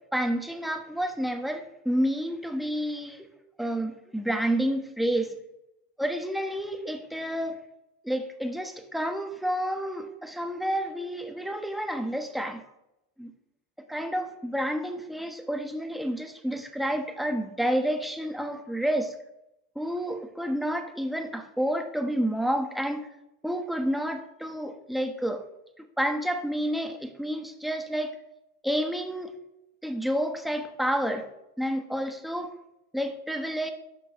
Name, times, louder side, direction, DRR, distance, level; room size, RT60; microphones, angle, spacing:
voice 1, 0.1-3.3 3.6-5.3 6.0-7.6 8.0-12.6 13.2-13.3 13.9-19.1 19.7-23.1 23.4-25.4 25.8-28.1 28.6-29.3 29.8-31.3 31.6-32.5 32.9-33.7, equal, ahead, 6 dB, 1.2 m, -29 dB
11.5 x 5.3 x 6.3 m, 0.86 s
supercardioid pair, 115°, 35 cm